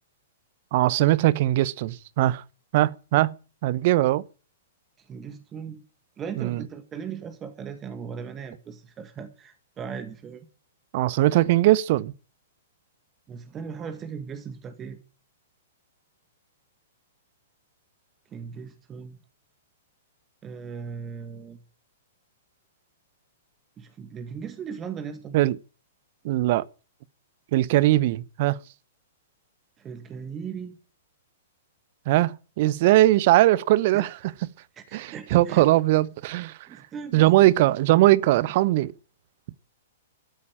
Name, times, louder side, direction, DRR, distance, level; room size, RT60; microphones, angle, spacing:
voice 1, 0.7-2.4 2.7-3.3 3.6-4.2 6.4-6.6 10.9-12.1 25.3-25.6 26.2-26.6 27.5-28.6 32.1-34.5 34.9-36.6 37.1-38.9, right 16 dB, 50° right, 0.8 m, -20 dB
voice 2, 5.1-5.8 6.2-10.5 13.3-15.0 18.3-19.2 20.4-21.6 23.8-25.4 29.8-30.8 33.9-34.0 34.8-35.6 36.7-37.2, right 6 dB, 25° right, 1.9 m, -38 dB
13.5 x 8.5 x 8.7 m
hypercardioid pair, 115°, 0 cm